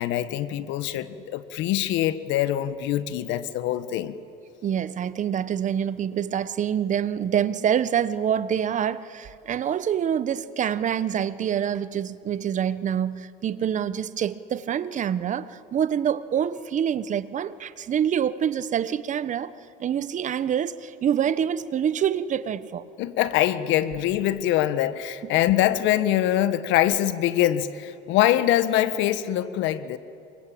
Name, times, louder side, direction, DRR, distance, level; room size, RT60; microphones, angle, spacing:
voice 1, 0.0-4.2 23.0-30.0, left 13 dB, 70° left, 1.3 m, -24 dB
voice 2, 4.6-19.5 19.8-22.9, right 9 dB, 40° right, 1.0 m, -26 dB
28.0 x 24.0 x 8.6 m
cardioid pair, 115°, 20 cm